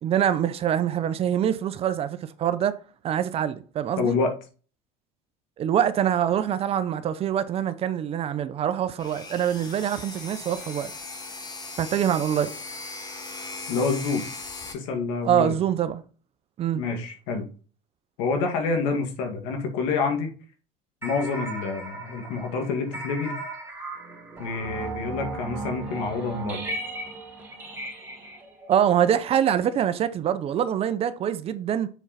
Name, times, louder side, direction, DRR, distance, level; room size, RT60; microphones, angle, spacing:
voice 1, 0.0-2.8 3.0-4.2 5.6-10.9 11.8-12.5 15.2-16.0 16.6-16.8 28.7-31.9, right 9 dB, 40° right, 0.6 m, -24 dB
voice 2, 4.0-4.3 13.7-14.3 14.7-15.6 16.7-17.5 18.2-20.3 21.0-23.4 24.4-26.6, left 4 dB, 80° left, 2.1 m, -27 dB
sound 1, 9.0-14.7, left 3 dB, 25° left, 1.6 m, -38 dB
sound 2, 21.0-29.9, right 3 dB, 15° right, 2.9 m, -37 dB
7.1 x 4.4 x 4.2 m
cardioid pair, 125°, 16 cm